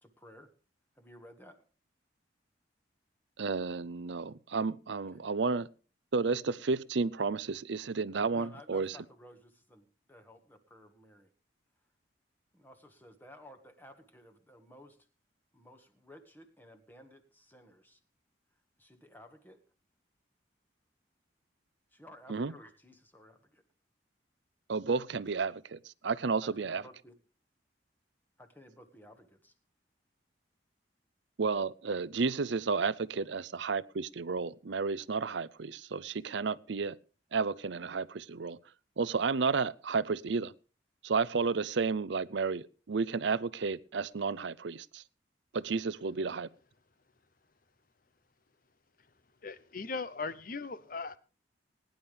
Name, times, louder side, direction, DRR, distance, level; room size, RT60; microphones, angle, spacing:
voice 1, 0.0-0.5 0.9-1.6 5.1-5.3 8.3-11.3 12.5-15.0 15.5-18.0 18.8-19.6 21.9-23.6 26.4-27.2 28.4-29.5, left 1 dB, 10° left, 1.6 m, -55 dB
voice 2, 3.4-5.7 6.1-8.9 22.3-22.5 24.7-26.8 31.4-37.0 37.3-38.6 39.0-40.5 41.0-45.0 45.5-46.5, right 4 dB, 70° right, 0.6 m, -32 dB
voice 3, 49.4-51.2, left 4 dB, 45° left, 0.8 m, -38 dB
20.0 x 10.5 x 3.4 m
head